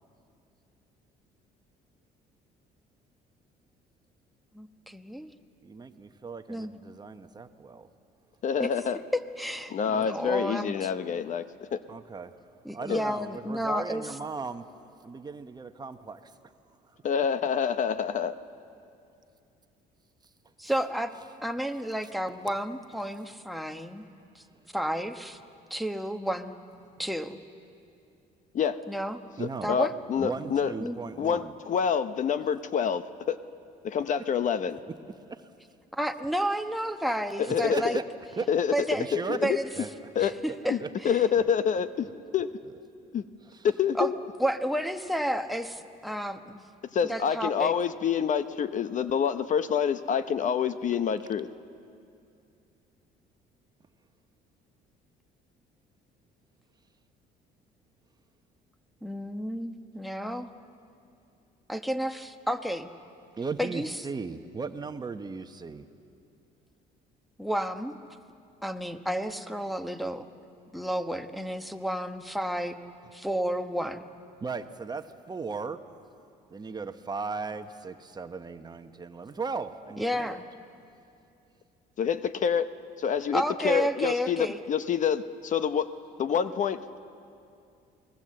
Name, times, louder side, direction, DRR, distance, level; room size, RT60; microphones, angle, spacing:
voice 1, 4.5-5.3 6.5-6.7 8.6-8.7 9.1-10.9 12.6-14.1 20.6-21.1 21.4-24.1 24.3-24.4 24.7-25.4 25.7-26.5 27.0-27.4 28.9-29.2 29.6-29.9 30.8-31.0 35.9-38.0 38.7-39.1 39.4-39.7 40.2-41.2 43.9-44.1 44.4-46.6 47.0-47.7 59.0-60.5 61.7-62.9 63.6-64.0 67.4-68.0 68.6-70.3 70.7-72.8 73.1-74.0 80.0-80.5 83.3-84.6, equal, ahead, 8 dB, 1.1 m, -31 dB
voice 2, 5.6-7.9 9.9-10.3 11.9-12.4 12.7-14.6 15.0-16.4 16.9-17.0 29.4-29.8 30.2-31.5 35.3-35.5 37.4-38.0 38.4-38.5 38.9-39.4 39.7-40.9 41.4-41.5 43.4-43.7 63.4-65.9 74.4-75.8 76.5-80.4, right 4 dB, 25° right, 8 dB, 1.0 m, -37 dB
voice 3, 8.4-9.0 9.7-11.4 11.7-11.8 12.9-13.0 17.0-18.4 28.5-28.8 29.4-30.7 31.2-33.4 33.8-34.8 37.4-38.0 38.5-38.7 39.1-39.6 40.2-40.3 40.7-40.8 41.0-42.1 42.3-42.5 43.1-43.2 43.6-44.1 46.9-51.5 82.0-82.7 83.0-85.9 86.2-87.0, left 7 dB, 50° left, 12 dB, 0.8 m, -27 dB
29.0 x 20.0 x 7.7 m, 2.5 s
cardioid pair, 110°, 17 cm